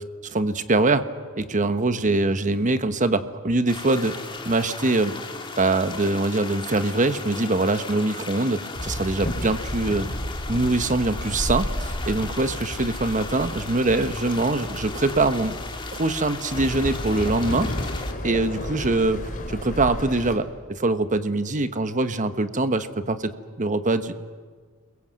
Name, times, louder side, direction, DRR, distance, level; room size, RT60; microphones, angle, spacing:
voice 1, 0.2-1.1 1.4-4.2 4.4-5.2 5.6-10.1 10.5-15.6 15.9-17.9 18.2-19.2 19.5-23.3 23.6-24.1, right 2 dB, 35° right, 11 dB, 1.2 m, -23 dB
sound 1, 3.7-18.1, left 3 dB, 20° left, 2.0 m, -37 dB
Walk footsteps / Chatter / Hiss, 8.8-20.4, left 1 dB, 40° left, 3.0 m, -32 dB
29.5 x 22.5 x 7.6 m, 1.5 s
head